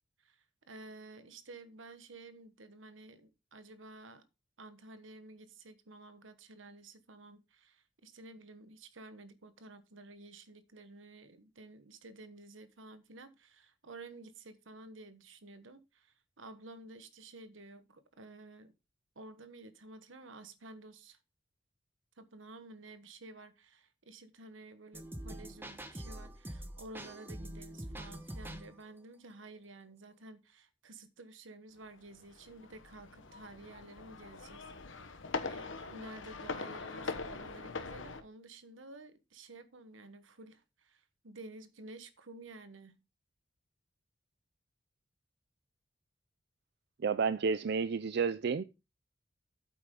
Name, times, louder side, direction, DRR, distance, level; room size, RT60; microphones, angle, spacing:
voice 1, 0.2-4.3 4.6-18.7 19.1-21.2 22.2-35.2 35.4-43.0, right 2 dB, 85° right, 1.2 m, -52 dB
sound 1, 24.9-28.8, right 1 dB, 10° right, 1.1 m, -44 dB
sound 2, 31.9-38.2, left 4 dB, 80° left, 1.1 m, -42 dB
voice 2, 47.0-48.6, right 5 dB, 60° right, 0.4 m, -31 dB
8.7 x 8.1 x 3.7 m
head